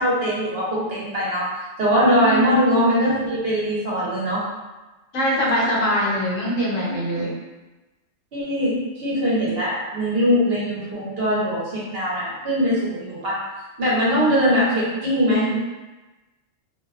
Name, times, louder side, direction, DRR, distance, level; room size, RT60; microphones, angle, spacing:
voice 1, 0.0-4.4 6.8-7.2 8.3-13.4 13.8-15.6, equal, 55° right, -7 dB, 0.9 m, -21 dB
voice 2, 5.1-7.3, equal, 80° left, -4 dB, 1.1 m, -22 dB
2.5 x 2.2 x 2.3 m, 1.1 s
omnidirectional pair, 1.3 m